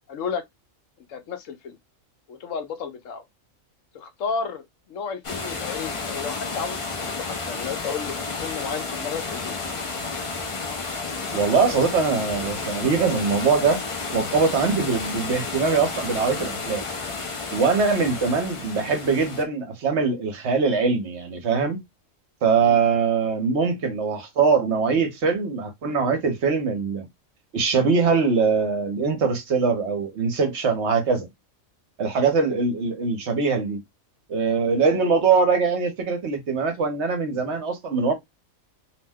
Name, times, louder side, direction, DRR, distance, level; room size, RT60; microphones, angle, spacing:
voice 1, 0.1-0.4 1.1-1.8 2.3-3.2 3.9-4.6 4.9-8.1 8.4-9.6 22.6-22.8, left 6 dB, 70° left, 1.0 m, -32 dB
sound 1, 5.2-19.4, left 4 dB, 50° left, 0.3 m, -31 dB
voice 2, 11.3-13.8 14.1-16.9 17.5-21.8 22.4-27.0 27.5-31.3 32.0-33.8 34.3-38.1, right 5 dB, 55° right, 1.0 m, -22 dB
2.7 x 2.1 x 3.4 m
omnidirectional pair, 1.5 m